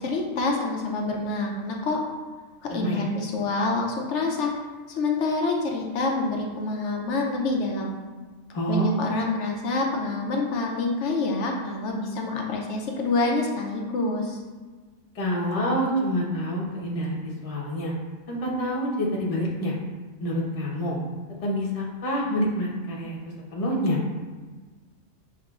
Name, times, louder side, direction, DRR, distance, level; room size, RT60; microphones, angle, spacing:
voice 1, 0.0-2.0 2.7-4.5 5.0-7.9 8.7-14.4, left 3 dB, 65° left, 1 dB, 0.9 m, -27 dB
voice 2, 2.7-3.1 8.5-8.9 15.1-17.9 18.3-19.7 20.2-21.0 21.4-24.0, equal, 30° left, -3 dB, 0.8 m, -27 dB
6.5 x 2.9 x 2.4 m, 1.4 s
omnidirectional pair, 1.4 m